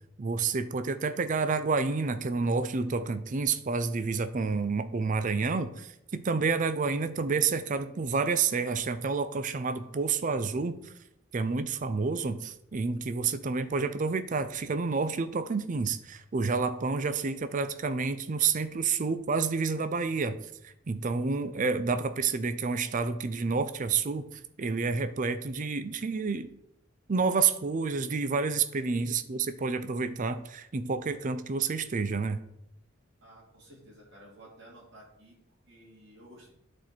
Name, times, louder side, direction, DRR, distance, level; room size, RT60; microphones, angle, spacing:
voice 1, 0.2-10.9 11.3-20.4 20.6-26.5 27.1-32.4, right 4 dB, 40° right, 11 dB, 0.5 m, -29 dB
voice 2, 28.8-29.2 33.2-35.4 35.7-36.5, right 1 dB, 60° right, -5 dB, 2.7 m, -53 dB
10.5 x 4.4 x 4.3 m, 0.78 s
head